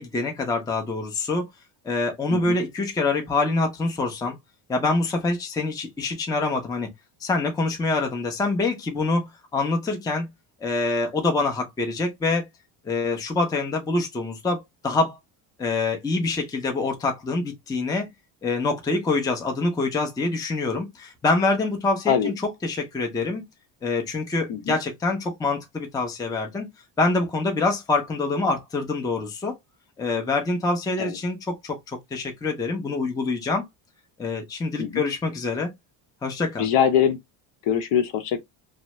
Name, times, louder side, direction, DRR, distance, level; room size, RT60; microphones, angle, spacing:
voice 1, 0.0-1.5 1.8-4.4 4.7-6.9 7.2-9.3 9.5-10.3 10.6-12.5 12.8-15.2 15.6-18.1 18.4-22.3 22.6-23.4 23.8-26.7 27.0-29.6 30.0-33.6 34.2-35.7 36.2-36.7, left 3 dB, 10° left, 0.4 m, -25 dB
voice 2, 36.6-37.2 37.6-38.4, left 8 dB, 65° left, 0.7 m, -22 dB
2.7 x 2.0 x 2.9 m
cardioid pair, 135°, 47 cm